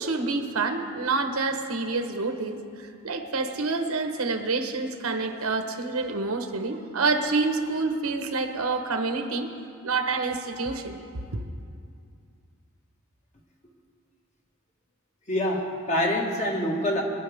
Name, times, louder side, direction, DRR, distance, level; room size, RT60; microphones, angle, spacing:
voice 1, 0.0-9.5 9.8-11.0 11.3-11.4, right 3 dB, 90° right, 6 dB, 1.1 m, -28 dB
voice 2, 15.3-17.0, left 1 dB, 35° left, -1 dB, 1.8 m, -26 dB
22.5 x 10.5 x 3.6 m, 2.4 s
head